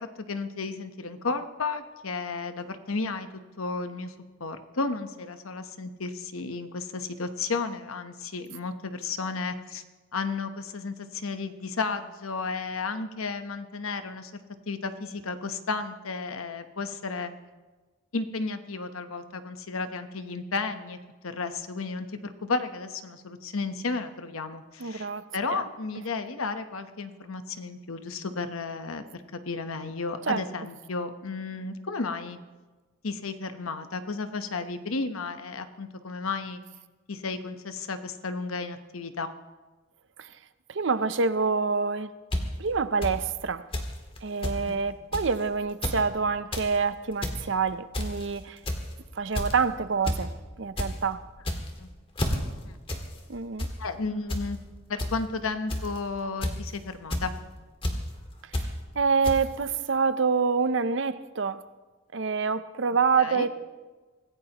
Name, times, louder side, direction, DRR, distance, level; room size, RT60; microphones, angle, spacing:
voice 1, 0.0-3.3 3.6-4.1 4.4-9.8 10.1-14.3 14.7-17.3 18.1-21.0 21.2-32.4 33.0-36.6 37.1-39.3 44.7-44.8 51.5-51.9 52.6-52.8 53.8-54.6 54.9-57.3 63.2-63.5, left 4 dB, 85° left, 1.0 m, -33 dB
voice 2, 24.8-25.6 30.3-30.4 40.2-40.3 40.7-42.1 42.6-43.7 44.2-48.6 49.2-51.2 53.3-53.7 58.6-58.7 58.9-61.7 62.1-63.5, right 5 dB, 60° right, 0.6 m, -27 dB
sound 1, 42.3-42.4 43.0-43.1 43.7-43.9 44.2-44.3 44.4-44.6 45.1-45.3 45.7-46.0 46.3-46.7 47.1-47.4 47.9-48.2 48.7-48.9 49.3-49.6 50.1-50.2 50.5-50.9 51.4-51.8 52.2-52.4 52.9-53.0 53.3-53.7 54.3-54.4 55.0-55.1 55.7-56.0 56.4-56.7 57.1-57.3 57.8-57.9 58.5-58.7 59.2-59.4, left 1 dB, 25° left, 1.8 m, -29 dB
25.0 x 15.5 x 3.0 m
head